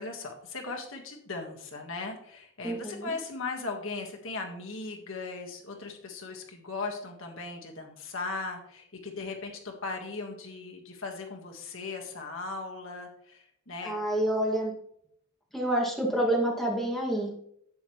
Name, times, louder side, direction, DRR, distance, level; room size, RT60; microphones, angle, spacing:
voice 1, 0.0-13.9, left 3 dB, 60° left, 2 dB, 1.7 m, -38 dB
voice 2, 2.6-3.1 13.8-14.7 15.5-17.3, right 1 dB, ahead, -3 dB, 2.3 m, -28 dB
12.5 x 8.6 x 3.2 m, 0.70 s
head